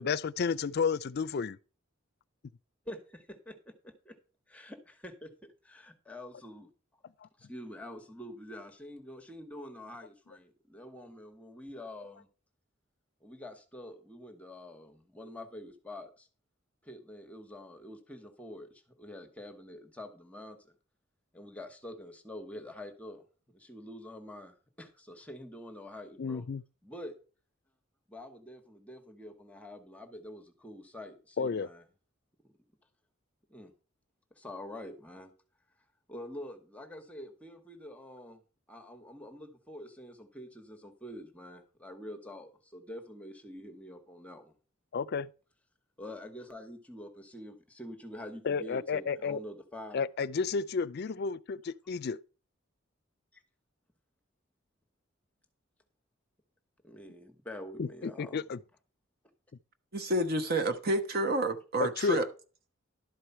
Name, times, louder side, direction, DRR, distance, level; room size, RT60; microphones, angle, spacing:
voice 1, 0.0-1.6 7.2-7.3 26.2-26.6 31.4-31.7 44.9-45.3 48.4-49.4 49.9-52.2 57.8-58.6 61.8-62.2, left 5 dB, 55° left, 0.4 m, -31 dB
voice 2, 2.9-4.2 4.5-6.7 7.4-12.3 13.2-16.3 16.8-20.7 21.3-26.5 26.8-27.1 28.1-31.8 32.4-32.5 33.5-33.7 34.3-35.3 36.1-38.4 38.7-44.5 46.0-50.1 53.3-53.4 56.8-58.4, left 1 dB, 5° left, 1.1 m, -46 dB
voice 3, 59.9-62.2, right 1 dB, 50° right, 1.1 m, -29 dB
12.0 x 4.8 x 5.6 m
head